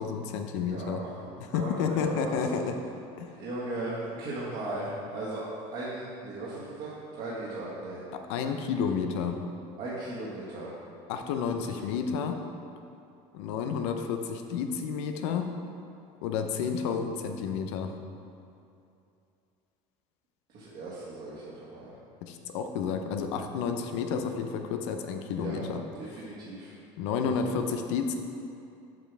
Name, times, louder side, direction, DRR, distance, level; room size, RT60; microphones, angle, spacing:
voice 1, 0.0-1.0 1.4-2.7 3.2-3.3 8.1-9.4 11.1-12.4 13.3-15.5 16.2-18.0 22.2-25.8 27.0-28.2, left 6 dB, 85° left, 6 dB, 0.7 m, -31 dB
voice 2, 0.6-2.5 3.3-8.0 9.8-10.7 20.5-22.0 25.3-25.7 26.0-26.7, right 2 dB, 50° right, -8 dB, 1.6 m, -37 dB
7.7 x 7.4 x 3.4 m, 2.7 s
cardioid pair, 125°, 14 cm